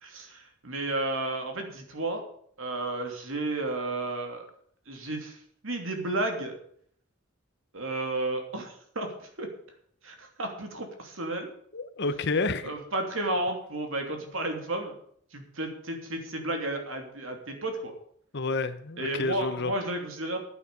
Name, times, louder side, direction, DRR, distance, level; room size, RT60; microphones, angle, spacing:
voice 1, 0.0-2.2 2.6-4.5 4.9-6.6 7.7-9.5 10.0-11.5 12.6-15.0 15.3-17.9 19.0-20.4, right 2 dB, 65° right, 4 dB, 2.9 m, -32 dB
voice 2, 11.7-12.7 18.3-19.7, left 3 dB, 55° left, 12 dB, 1.0 m, -29 dB
11.0 x 9.6 x 6.9 m, 0.63 s
head